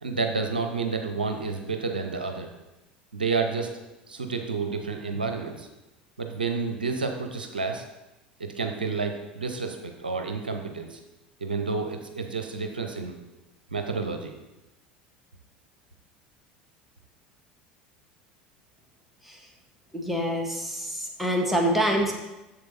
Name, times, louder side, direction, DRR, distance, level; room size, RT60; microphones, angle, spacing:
voice 1, 0.0-2.5 3.1-3.7 4.1-5.7 6.2-7.8 8.4-11.0 11.4-13.1 13.7-14.3, right 4 dB, 80° right, 5 dB, 0.7 m, -30 dB
voice 2, 19.9-22.1, equal, 5° right, 1 dB, 1.5 m, -26 dB
7.6 x 7.0 x 4.2 m, 1.0 s
figure-of-eight pair, 70°, 5 cm